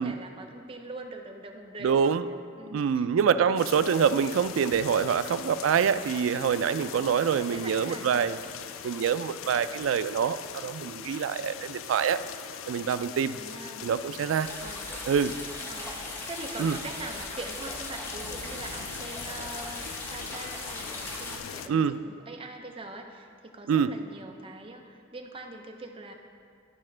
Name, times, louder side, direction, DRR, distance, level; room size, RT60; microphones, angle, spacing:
voice 1, 0.0-2.2 2.6-3.1 6.9-8.3 13.3-14.0 14.6-14.9 15.7-26.1, right 2 dB, 30° right, 3 dB, 0.6 m, -43 dB
voice 2, 1.8-2.3 2.7-8.4 8.8-12.2 12.7-13.4 13.8-14.5 15.1-15.4 16.6-16.8 21.7-22.0 23.7-23.9, right 7 dB, 85° right, 13 dB, 0.3 m, -25 dB
sound 1, 3.6-21.7, left 9 dB, 85° left, 0.3 m, -41 dB
sound 2, 14.4-21.4, equal, 10° left, 0.9 m, -39 dB
14.0 x 5.0 x 3.3 m, 2.3 s
head